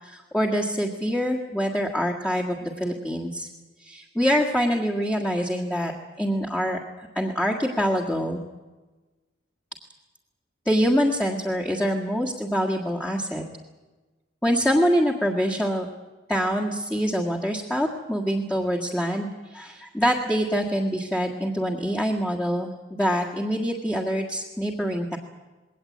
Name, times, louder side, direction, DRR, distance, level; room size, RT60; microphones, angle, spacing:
voice 1, 0.0-3.5 3.8-5.9 6.2-6.8 7.2-8.4 10.7-13.4 14.4-15.9 16.3-25.2, equal, 5° left, -2 dB, 1.8 m, -25 dB
21.0 x 18.0 x 8.5 m, 1.2 s
head